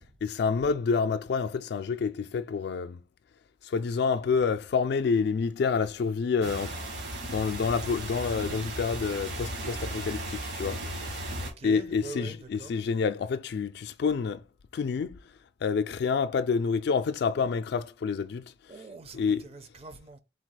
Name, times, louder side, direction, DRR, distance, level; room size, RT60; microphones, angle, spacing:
voice 1, 0.2-3.0 3.6-6.8 7.2-10.8 11.1-11.2 11.6-14.4 14.7-15.2 15.6-18.4 19.1-19.4, left 5 dB, 60° left, 0.3 m, -28 dB
sound 1, 6.4-11.5, right 1 dB, 65° right, 1.6 m, -36 dB
voice 2, 11.4-12.7 18.7-20.2, right 4 dB, 35° right, 0.5 m, -43 dB
3.9 x 2.4 x 4.6 m
head